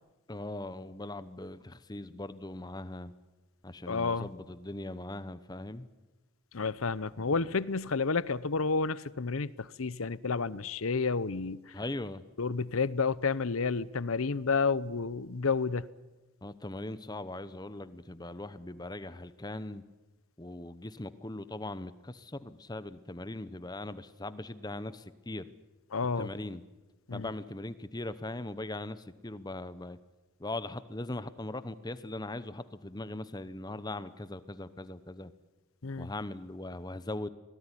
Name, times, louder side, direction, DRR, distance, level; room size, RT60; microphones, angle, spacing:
voice 1, 0.3-3.1 3.6-5.9 7.2-7.5 11.7-12.2 16.4-19.8 20.4-25.4 26.2-26.6 27.1-30.0 30.4-35.3 36.0-37.3, left 2 dB, 20° left, 0.9 m, -40 dB
voice 2, 3.9-4.3 6.5-11.6 12.4-15.9 25.9-26.3 27.1-27.3 35.8-36.1, left 4 dB, 80° left, 0.8 m, -30 dB
24.5 x 18.5 x 9.9 m
head